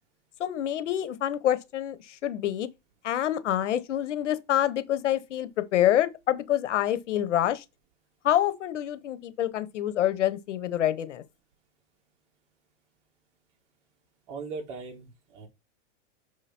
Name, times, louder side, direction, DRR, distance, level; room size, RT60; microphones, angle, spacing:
voice 1, 0.4-2.7 3.0-7.6 8.2-11.2, left 11 dB, 90° left, 1.2 m, -27 dB
voice 2, 14.3-15.5, right 4 dB, 45° right, 2.6 m, -39 dB
6.4 x 4.9 x 4.4 m
supercardioid pair, 145°, 35 cm